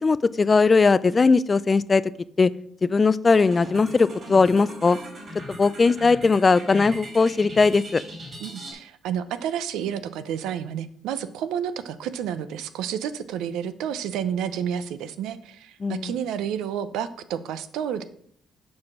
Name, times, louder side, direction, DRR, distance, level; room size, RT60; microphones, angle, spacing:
voice 1, 0.0-2.0 2.4-2.5 2.8-5.0 5.5-8.0 15.8-16.1, left 4 dB, 25° left, 17 dB, 0.3 m, -19 dB
sound 1, 3.3-8.7, equal, 40° right, 3.4 m, -39 dB
voice 2, 8.4-18.0, right 9 dB, 90° right, 13 dB, 0.6 m, -30 dB
7.2 x 4.8 x 5.9 m, 0.64 s
cardioid pair, 110°, 0 cm